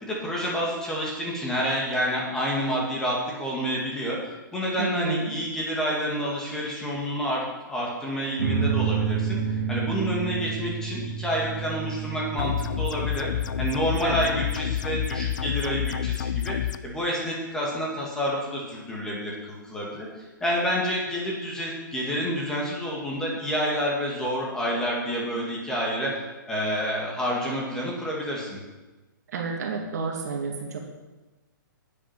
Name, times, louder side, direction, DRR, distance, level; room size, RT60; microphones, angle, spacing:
voice 1, 0.0-4.2 4.5-13.3 13.6-16.6 16.8-20.1 20.4-26.1 26.5-28.6, equal, 5° left, -4 dB, 2.0 m, -28 dB
voice 2, 4.8-5.3 14.0-14.3 29.3-30.8, right 4 dB, 55° right, 2 dB, 2.2 m, -30 dB
sound 1, 8.4-15.3, right 6 dB, 70° right, 2.4 m, -30 dB
sound 2, 12.4-16.8, left 11 dB, 60° left, 0.6 m, -28 dB
10.0 x 8.9 x 5.9 m, 1.1 s
hypercardioid pair, 165°, 11 cm